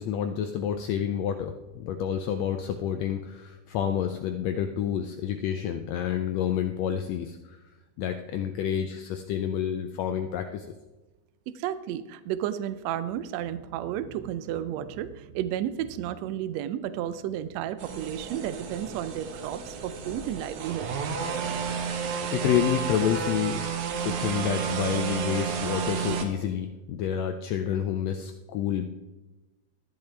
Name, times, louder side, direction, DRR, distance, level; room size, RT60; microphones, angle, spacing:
voice 1, 0.0-7.6 8.0-10.7 22.3-23.6 24.0-28.9, left 9 dB, 80° left, 7 dB, 1.5 m, -29 dB
voice 2, 11.5-20.9, right 11 dB, 90° right, 13 dB, 1.5 m, -32 dB
sound 1, 17.8-26.2, right 6 dB, 70° right, 2.3 m, -31 dB
13.0 x 10.5 x 3.3 m, 1.1 s
omnidirectional pair, 3.6 m